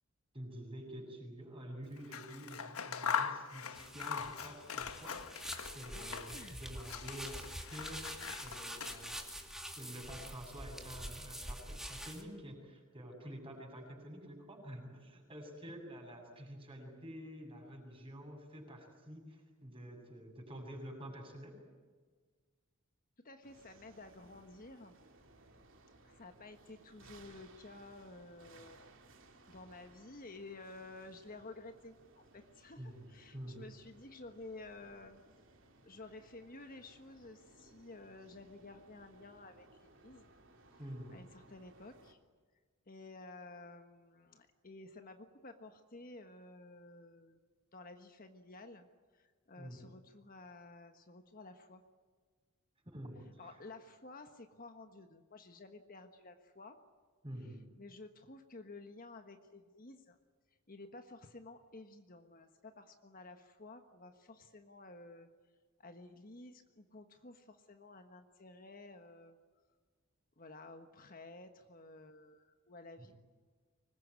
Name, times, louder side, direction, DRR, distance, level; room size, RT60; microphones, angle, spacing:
voice 1, 0.3-9.2 9.8-21.6 32.8-33.7 40.8-41.2 49.6-49.9 52.8-53.4 57.2-57.6 73.0-73.1, equal, 25° right, 2 dB, 7.2 m, -49 dB
Scissors, 2.0-6.5 6.8-9.3, left 6 dB, 75° left, 1.4 m, -41 dB
sound 1, 3.7-12.2, equal, ahead, 2.4 m, -46 dB
voice 2, 5.9-6.6 23.2-25.0 26.0-28.9 29.5-35.2 35.8-40.3 41.1-42.2 42.9-47.4 47.7-51.8 53.4-56.8 57.4-60.2 60.7-65.3 65.8-69.4 70.4-73.2, left 2 dB, 40° left, 6 dB, 1.4 m, -53 dB
sound 2, 23.4-42.1, right 2 dB, 60° right, 3.2 m, -62 dB
25.0 x 21.0 x 9.7 m, 1.5 s
head